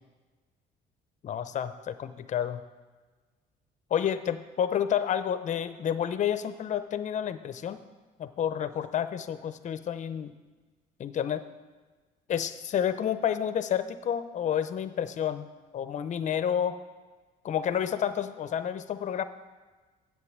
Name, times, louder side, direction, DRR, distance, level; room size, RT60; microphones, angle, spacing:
voice 1, 1.2-2.6 3.9-7.8 8.2-10.3 11.0-11.4 12.3-15.5 15.7-16.8 17.4-19.2, left 9 dB, 45° left, 12 dB, 0.7 m, -30 dB
8.2 x 7.7 x 7.3 m, 1.4 s
cardioid pair, 110°, 17 cm